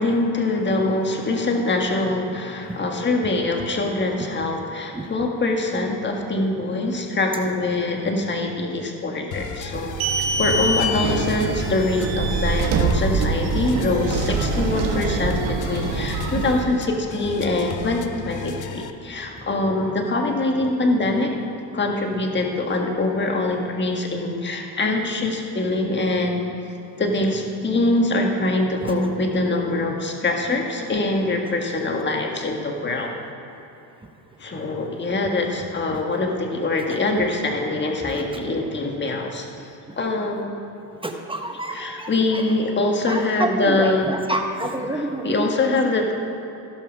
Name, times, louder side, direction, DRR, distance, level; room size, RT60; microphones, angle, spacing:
voice 1, 0.0-21.3 21.7-26.4 27.0-33.2 34.4-39.7 40.0-40.6 41.7-44.1 44.9-46.1, left 2 dB, 25° left, 2 dB, 1.6 m, -24 dB
sound 1, 9.3-18.9, left 6 dB, 40° left, 0.8 m, -35 dB
sound 2, 9.7-16.6, right 3 dB, 75° right, 1.6 m, -24 dB
voice 2, 41.0-42.4 43.1-45.5, right 2 dB, 10° right, 3 dB, 1.1 m, -28 dB
16.5 x 5.5 x 6.2 m, 3.0 s
supercardioid pair, 95°, 47 cm